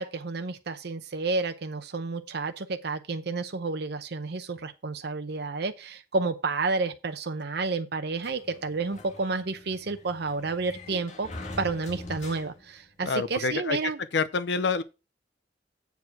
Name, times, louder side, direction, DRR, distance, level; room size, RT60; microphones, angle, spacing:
voice 1, 0.0-11.3 11.6-14.0, right 3 dB, 65° right, 0.7 m, -30 dB
Sliding door, 8.2-12.9, left 2 dB, 45° left, 1.7 m, -43 dB
voice 2, 13.0-13.8 14.1-14.8, left 4 dB, 80° left, 0.6 m, -27 dB
8.1 x 4.7 x 5.8 m
head